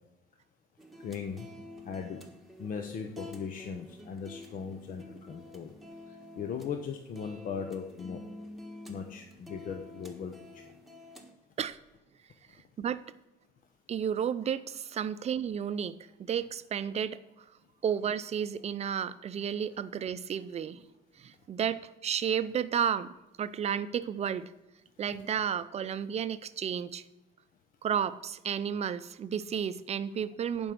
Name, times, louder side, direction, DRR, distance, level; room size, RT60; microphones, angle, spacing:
sound 1, 0.8-11.3, left 1 dB, ahead, 1.4 m, -49 dB
voice 1, 1.0-1.5 1.8-2.2 2.6-5.7 6.1-8.2 8.9-10.6, left 6 dB, 55° left, 6 dB, 0.8 m, -38 dB
voice 2, 13.9-17.2 17.8-20.8 21.2-23.1 23.4-24.5 25.0-27.0 27.8-30.7, right 8 dB, 40° right, 14 dB, 0.6 m, -32 dB
11.0 x 5.3 x 6.1 m, 0.97 s
cardioid pair, 110°, 17 cm